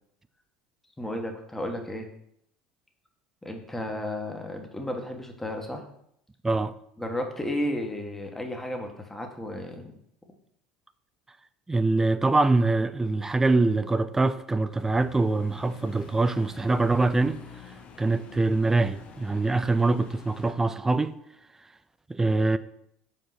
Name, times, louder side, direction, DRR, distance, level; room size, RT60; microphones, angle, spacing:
voice 1, 1.0-2.1 3.4-5.8 7.0-9.9, left 1 dB, 10° left, 1.5 m, -33 dB
voice 2, 6.4-6.7 11.7-17.4 18.0-21.1 22.1-22.6, right 3 dB, 15° right, 0.5 m, -24 dB
sound 1, 14.7-20.5, left 5 dB, 45° left, 1.0 m, -47 dB
5.4 x 4.5 x 5.8 m
hypercardioid pair, 75°, 3 cm